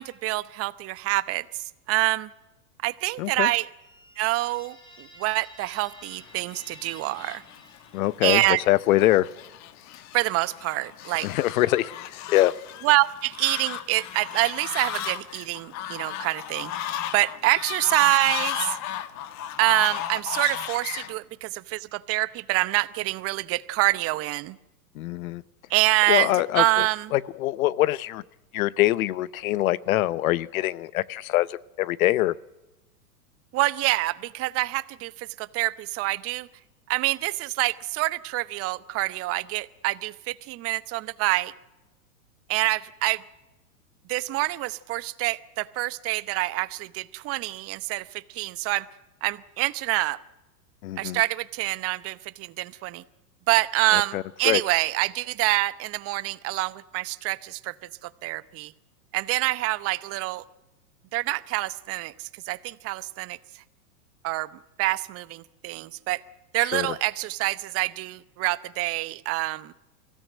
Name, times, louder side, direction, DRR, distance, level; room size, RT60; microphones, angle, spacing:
voice 1, 0.0-2.3 2.8-3.7 4.2-7.4 8.2-8.6 10.1-11.3 12.8-16.7 17.1-18.8 19.6-24.6 25.7-27.1 33.5-36.5 36.9-41.5 42.5-43.2 44.1-48.9 49.2-50.2 51.0-53.0 53.5-58.7 59.1-60.4 61.1-63.6 64.2-66.2 66.5-69.7, right 19 dB, 30° right, 17 dB, 0.8 m, -26 dB
voice 2, 3.2-3.5 7.9-9.3 11.2-11.9 12.3-12.5 25.0-25.4 26.1-26.8 27.1-28.2 28.5-32.3 50.8-51.2 53.9-54.6 66.7-66.9, left 15 dB, 65° left, 20 dB, 0.8 m, -24 dB
sound 1, 3.8-8.5, equal, 10° left, 4.0 m, -50 dB
Fowl, 6.3-21.1, left 11 dB, 35° left, 1.5 m, -35 dB
23.5 x 16.5 x 9.2 m, 1.0 s
hypercardioid pair, 125°, 46 cm